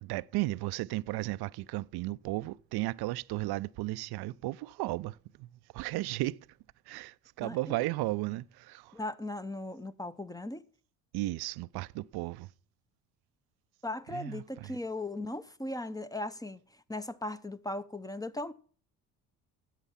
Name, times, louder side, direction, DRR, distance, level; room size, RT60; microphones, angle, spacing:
voice 1, 0.0-5.5 5.7-6.4 6.9-8.9 11.1-12.5 14.1-14.4, right 19 dB, 55° right, 0.5 m, -34 dB
voice 2, 7.4-7.9 8.9-10.7 13.8-18.5, left 2 dB, 10° left, 0.6 m, -38 dB
13.0 x 8.1 x 5.7 m
hypercardioid pair, 50°, 48 cm